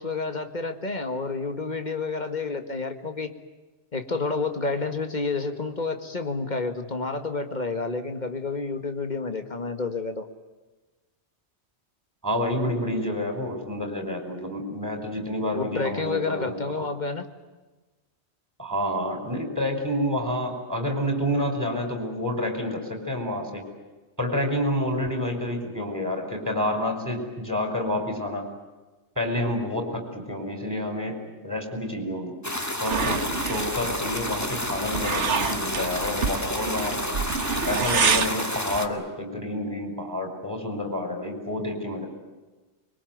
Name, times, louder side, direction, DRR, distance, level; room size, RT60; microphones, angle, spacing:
voice 1, 0.0-3.3 3.9-10.3 15.5-17.3, left 3 dB, 40° left, 7 dB, 1.9 m, -29 dB
voice 2, 12.2-16.9 18.6-23.6 24.2-28.5 29.2-32.3 32.8-37.1 37.6-42.1, left 1 dB, 15° right, 4 dB, 5.3 m, -29 dB
sound 1, 32.4-38.9, left 1 dB, 15° left, 1.9 m, -30 dB
sound 2, 32.9-38.4, right 5 dB, 90° right, 1.6 m, -28 dB
25.0 x 22.5 x 9.4 m, 1.2 s
omnidirectional pair, 1.2 m